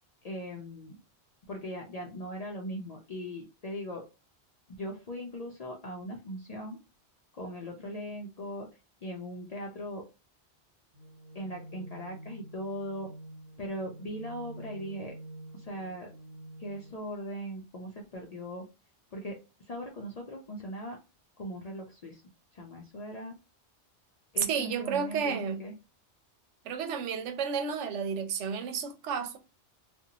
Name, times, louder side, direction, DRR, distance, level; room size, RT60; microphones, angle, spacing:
voice 1, 0.2-1.0 1.5-4.0 4.7-6.8 7.4-8.7 9.0-10.0 11.3-13.1 13.6-15.1 15.6-16.1 16.6-18.6 19.1-19.4 19.7-21.0 21.4-22.2 22.5-23.3 24.3-25.7, equal, 60° left, 0.4 m, -39 dB
sound 1, 10.9-16.9, right 1 dB, 55° right, 1.2 m, -47 dB
voice 2, 24.4-25.6 26.6-29.4, right 6 dB, 85° right, 0.9 m, -31 dB
2.5 x 2.1 x 2.8 m
omnidirectional pair, 1.2 m